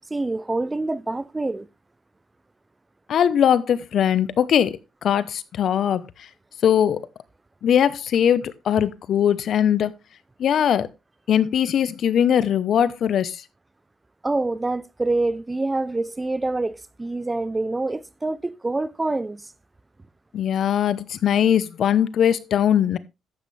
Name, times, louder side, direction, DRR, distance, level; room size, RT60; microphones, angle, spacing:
voice 1, 0.1-1.7 14.2-19.4, right 2 dB, 20° right, 0.7 m, -26 dB
voice 2, 3.1-6.0 6.6-7.0 7.6-9.9 10.4-10.9 11.3-13.4 20.3-23.0, left 9 dB, 65° left, 0.9 m, -20 dB
12.0 x 8.5 x 3.3 m
cardioid pair, 90°, 0 cm